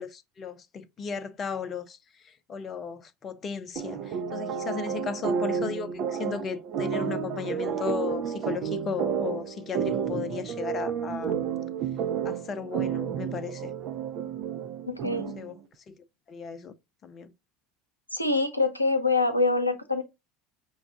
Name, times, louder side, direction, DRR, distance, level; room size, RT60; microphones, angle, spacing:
voice 1, 0.0-11.4 12.2-13.7 15.1-15.6 15.9-16.7 17.0-17.3, left 6 dB, 35° left, 0.6 m, -35 dB
sound 1, 3.8-15.5, right 7 dB, 50° right, 0.6 m, -31 dB
voice 2, 14.9-15.3 18.1-20.0, left 3 dB, 90° left, 0.7 m, -25 dB
6.2 x 2.3 x 3.5 m
figure-of-eight pair, 70°, 0 cm